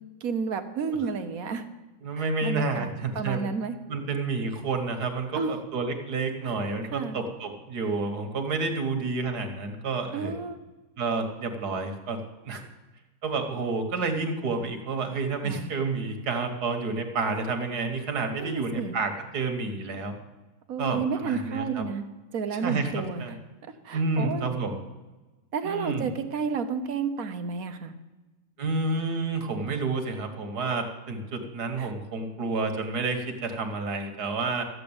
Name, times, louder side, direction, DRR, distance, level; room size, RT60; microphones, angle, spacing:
voice 1, 0.2-1.6 2.2-3.8 5.3-5.6 6.4-6.5 6.9-7.2 10.1-10.6 15.4-15.7 18.4-18.9 20.7-22.0 22.3-23.2 23.8-24.5 25.5-27.9 31.8-31.9, right 5 dB, 65° right, 8 dB, 1.4 m, -31 dB
voice 2, 2.0-3.4 3.9-10.3 11.0-12.2 12.5-12.6 13.2-20.1 20.8-21.8 22.5-23.4 23.9-24.8 25.6-26.1 28.6-34.6, right 3 dB, 85° right, 5 dB, 2.1 m, -30 dB
13.5 x 7.7 x 8.7 m, 1.1 s
omnidirectional pair, 1.7 m